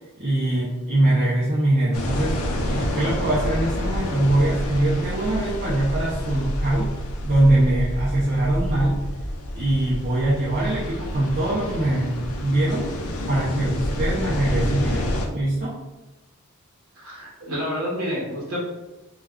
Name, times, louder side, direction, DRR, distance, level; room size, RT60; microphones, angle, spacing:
voice 1, 0.2-2.4 2.7-6.9 7.2-9.0 9.5-12.9 13.3-15.7, right 1 dB, 40° right, -7 dB, 0.5 m, -22 dB
sound 1, 1.9-15.3, left 1 dB, 80° left, 0.5 m, -28 dB
voice 2, 16.9-18.6, equal, 80° right, -5 dB, 0.9 m, -29 dB
2.3 x 2.3 x 3.5 m, 1.1 s
head